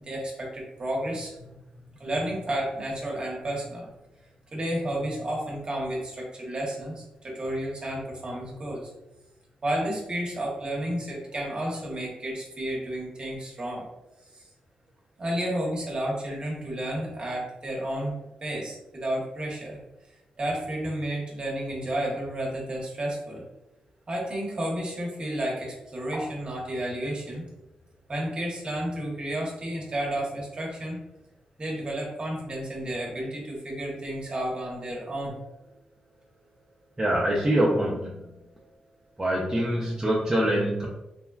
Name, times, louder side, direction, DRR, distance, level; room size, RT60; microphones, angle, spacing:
voice 1, 0.1-1.4 2.0-3.9 4.5-8.9 9.6-13.9 15.2-19.8 20.4-23.4 24.1-27.4 28.1-31.0 31.6-35.4, right 1 dB, 40° right, -2 dB, 1.0 m, -31 dB
voice 2, 37.0-38.3 38.6-38.7 39.2-40.9, right 1 dB, 20° right, -4 dB, 0.5 m, -25 dB
3.2 x 2.2 x 2.3 m, 0.95 s
cardioid pair, 75°, 3 cm